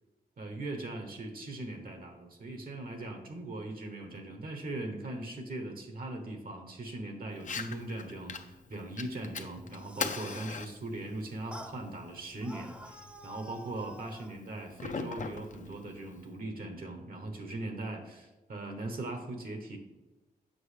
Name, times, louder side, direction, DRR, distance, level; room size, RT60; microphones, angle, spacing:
voice 1, 0.4-19.8, right 2 dB, 65° right, 4 dB, 1.0 m, -40 dB
Fire, 7.3-16.3, left 5 dB, 50° left, 0.5 m, -42 dB
sound 1, 9.6-10.6 11.5-11.8 12.4-14.3, right 1 dB, 5° right, 0.5 m, -48 dB
7.7 x 5.5 x 3.3 m, 1.1 s
wide cardioid pair, 120°, 16 cm